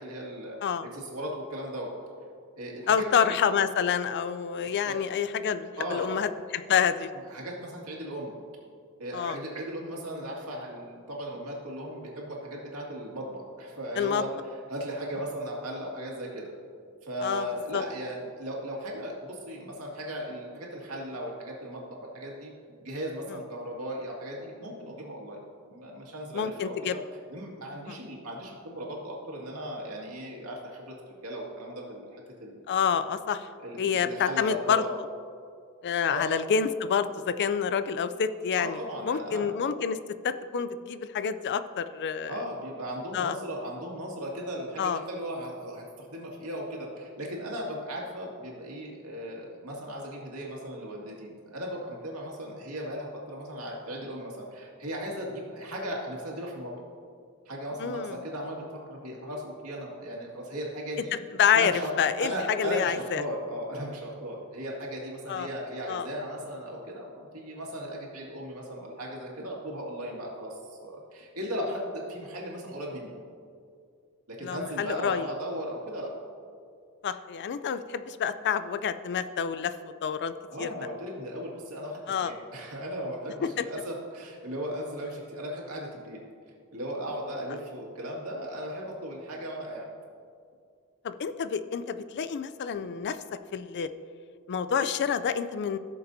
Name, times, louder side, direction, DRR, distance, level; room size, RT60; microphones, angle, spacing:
voice 1, 0.0-0.6 0.9-1.9 2.6-3.4 4.8-5.0 5.8-6.2 7.1-8.3 9.0-16.5 17.0-22.5 22.8-25.4 25.7-27.0 27.3-30.9 31.2-32.9 33.6-34.9 36.1-36.3 38.6-39.5 42.3-56.7 57.5-61.2 61.5-61.9 62.2-73.1 74.3-76.1 80.5-86.2 86.7-89.9, equal, 75° right, -2 dB, 2.1 m, -37 dB
voice 2, 2.9-7.1 9.1-9.4 14.0-14.2 17.2-17.5 17.7-17.8 26.3-27.0 27.9-28.0 32.7-33.5 33.8-34.8 35.8-38.8 39.0-40.0 40.2-42.3 43.1-43.4 44.8-45.0 57.8-58.1 61.4-61.7 62.0-63.2 65.3-65.5 65.9-66.1 74.4-75.2 77.0-79.7 80.0-80.3 80.6-80.7 82.1-82.3 83.4-83.6 91.0-93.2 93.5-93.9 94.5-95.8, left 7 dB, 50° left, 12 dB, 0.4 m, -28 dB
16.0 x 6.8 x 2.7 m, 2.3 s
head